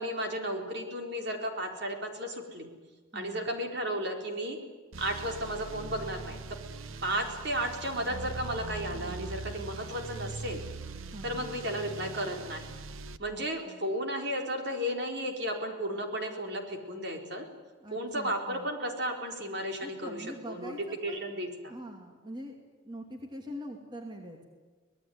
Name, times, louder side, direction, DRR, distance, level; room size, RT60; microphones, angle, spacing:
voice 1, 0.0-2.7 3.1-4.6 5.0-6.4 7.0-10.6 11.2-12.7 13.2-17.4 17.9-20.7 21.0-21.7, equal, 55° right, 4 dB, 4.1 m, -34 dB
voice 2, 3.1-3.5 6.9-7.0 11.1-11.5 13.3-13.8 17.8-18.7 19.8-21.3 21.7-22.5 22.8-24.4, equal, 20° right, 2 dB, 2.7 m, -44 dB
sound 1, 4.9-13.2, right 3 dB, 80° right, 1.0 m, -41 dB
25.0 x 19.5 x 9.4 m, 1.4 s
head